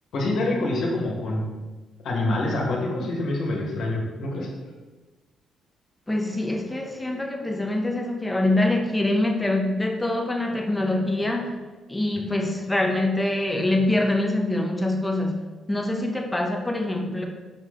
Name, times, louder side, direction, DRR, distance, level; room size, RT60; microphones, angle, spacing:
voice 1, 0.1-1.4 2.0-4.5, left 2 dB, 70° left, -2 dB, 1.7 m, -26 dB
voice 2, 6.1-11.6 11.9-15.4 15.7-17.3, left 1 dB, 10° left, 2 dB, 1.0 m, -24 dB
6.3 x 4.7 x 3.9 m, 1.2 s
cardioid pair, 90°, 0 cm